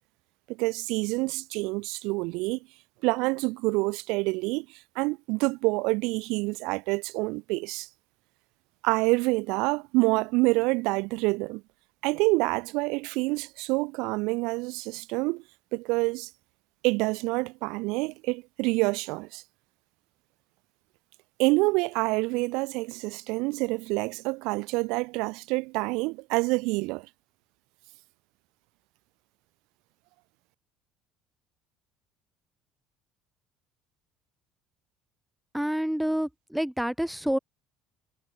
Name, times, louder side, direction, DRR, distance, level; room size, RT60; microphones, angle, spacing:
voice 1, 0.5-2.6 3.0-4.7 5.0-7.9 8.8-11.6 12.0-15.4 15.7-16.3 16.8-19.4 21.4-27.1, right 26 dB, 80° right, 0.9 m, -27 dB
voice 2, 35.5-37.4, equal, ahead, 1.1 m, -28 dB
cardioid pair, 110°, 0 cm